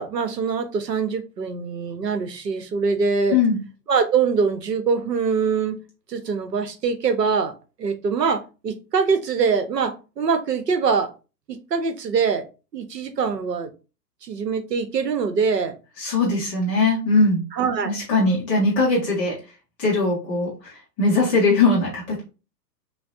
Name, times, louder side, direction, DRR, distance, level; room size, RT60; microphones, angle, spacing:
voice 1, 0.0-3.4 3.9-5.8 6.1-11.1 11.5-12.5 12.7-13.7 14.2-15.8 17.5-17.9, right 5 dB, 75° right, 10 dB, 0.8 m, -23 dB
voice 2, 16.0-17.4 17.8-19.4 19.8-22.2, left 3 dB, 10° left, -6 dB, 0.4 m, -20 dB
5.7 x 2.1 x 2.5 m, 0.31 s
figure-of-eight pair, 105°, 49 cm